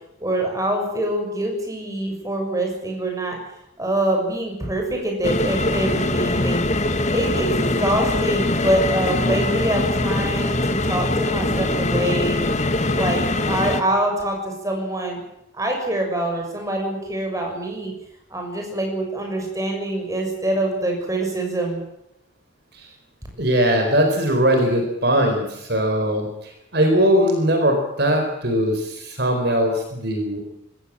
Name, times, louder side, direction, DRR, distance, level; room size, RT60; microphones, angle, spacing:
voice 1, 0.2-3.4 3.8-6.6 7.1-12.4 12.9-15.2 15.5-17.9 18.3-21.8, right 1 dB, 15° right, 2 dB, 6.6 m, -25 dB
sound 1, 5.2-13.8, left 2 dB, 35° left, 1.7 m, -22 dB
voice 2, 23.4-30.4, equal, 55° right, 4 dB, 4.4 m, -20 dB
25.0 x 16.5 x 7.6 m, 0.84 s
head